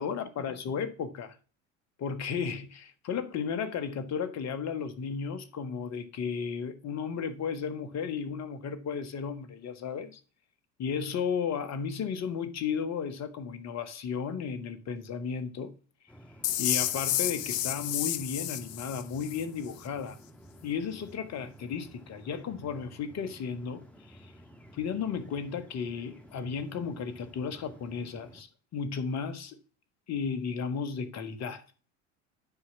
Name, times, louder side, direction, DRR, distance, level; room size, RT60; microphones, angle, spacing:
voice 1, 0.0-1.4 2.0-10.2 10.8-15.7 16.6-20.2 20.6-23.8 24.1-24.3 24.7-29.6 30.1-31.6, left 6 dB, 40° left, 1.7 m, -34 dB
sound 1, 16.1-28.4, equal, 5° left, 2.2 m, -53 dB
sound 2, 16.4-19.4, left 12 dB, 75° left, 0.7 m, -31 dB
9.8 x 4.8 x 7.2 m
hypercardioid pair, 75°, 39 cm